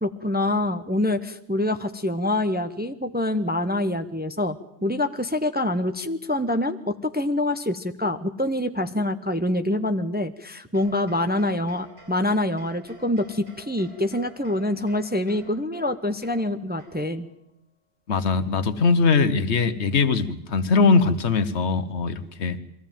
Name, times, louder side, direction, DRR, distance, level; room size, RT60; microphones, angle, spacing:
voice 1, 0.0-4.6 4.8-17.3, left 1 dB, 10° right, 9 dB, 0.6 m, -25 dB
sound 1, 10.7-17.3, right 2 dB, 65° right, 8.4 m, -51 dB
voice 2, 18.1-22.6, left 4 dB, 75° left, 12 dB, 1.3 m, -21 dB
22.5 x 15.0 x 9.0 m, 0.84 s
omnidirectional pair, 1.1 m